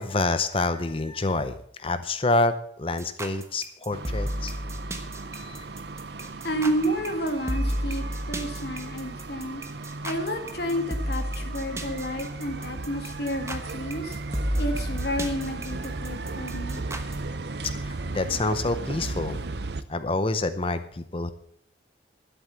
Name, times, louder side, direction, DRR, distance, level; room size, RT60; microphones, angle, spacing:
voice 1, 0.0-4.5 5.3-5.7 17.6-19.4 19.9-21.3, left 2 dB, 30° left, 12 dB, 0.7 m, -27 dB
sound 1, 3.0-17.2, equal, 15° right, 1.1 m, -32 dB
sound 2, 3.9-19.8, right 3 dB, 65° right, 0.7 m, -36 dB
voice 2, 6.4-9.6 10.0-14.2 14.6-16.8, equal, 60° left, 5 dB, 2.1 m, -30 dB
12.0 x 7.9 x 6.9 m, 0.65 s
head